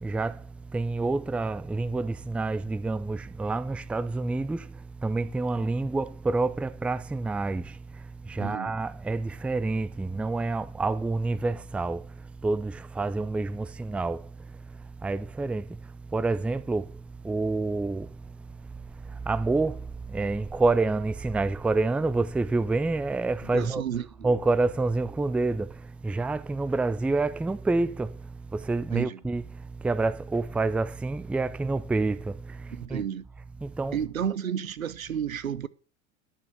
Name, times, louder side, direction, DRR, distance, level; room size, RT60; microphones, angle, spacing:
voice 1, 0.0-0.4 0.7-7.8 8.2-12.1 12.4-14.3 15.0-15.8 16.1-17.0 17.2-18.1 19.1-23.8 24.2-28.2 28.5-33.0 33.6-34.0, right 3 dB, 5° right, 0.4 m, -28 dB
voice 2, 8.4-8.7 23.5-24.3 28.9-29.2 32.7-33.2 33.9-35.7, right 8 dB, 85° right, 0.9 m, -32 dB
11.5 x 6.7 x 6.5 m
figure-of-eight pair, 80°, 40 cm